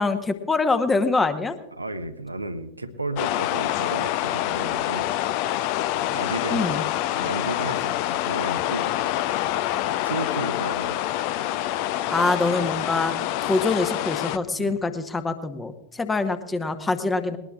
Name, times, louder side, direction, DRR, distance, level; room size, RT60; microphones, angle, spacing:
voice 1, 0.0-1.5 6.5-6.8 12.1-13.1 13.5-17.4, left 3 dB, 15° left, 10 dB, 1.0 m, -24 dB
voice 2, 1.7-5.1 6.1-6.8 7.1-8.9 10.0-11.1 14.6-14.8, right 2 dB, 85° right, 8 dB, 0.9 m, -33 dB
sound 1, 3.2-14.4, left 13 dB, 45° left, 0.6 m, -26 dB
20.5 x 19.5 x 2.4 m, 0.95 s
figure-of-eight pair, 90°, 0 cm